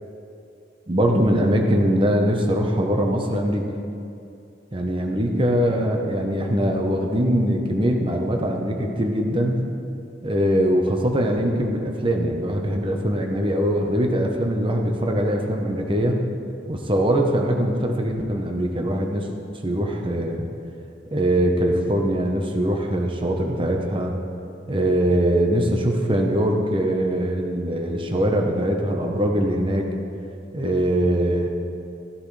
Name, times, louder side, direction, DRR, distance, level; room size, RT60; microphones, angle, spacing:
voice 1, 0.9-3.7 4.7-9.6 10.2-16.2 16.7-19.3 19.6-20.5 21.1-24.1 24.7-29.9 30.5-31.5, equal, 25° right, 2 dB, 0.9 m, -22 dB
14.0 x 10.5 x 3.3 m, 2.5 s
head